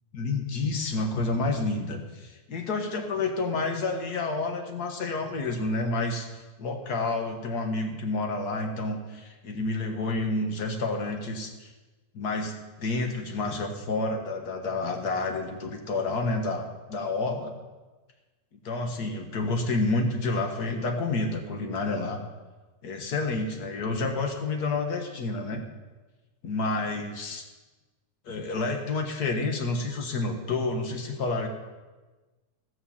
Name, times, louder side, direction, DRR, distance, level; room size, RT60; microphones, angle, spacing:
voice 1, 0.1-11.7 12.1-17.5 18.6-22.2 22.8-25.6 26.4-27.4 28.2-31.5, left 3 dB, 45° left, 4 dB, 1.3 m, -29 dB
18.0 x 6.4 x 7.2 m, 1.2 s
omnidirectional pair, 3.4 m